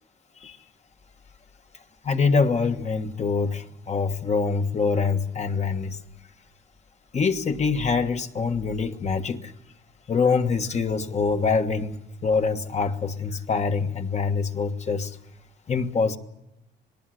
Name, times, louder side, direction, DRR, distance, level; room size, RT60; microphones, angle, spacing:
voice 1, 2.0-6.0 7.1-9.5 10.1-12.0 12.2-15.1 15.7-16.2, left 5 dB, 35° left, 6 dB, 1.5 m, -24 dB
26.5 x 19.0 x 7.9 m, 0.87 s
cardioid pair, 120°, 20 cm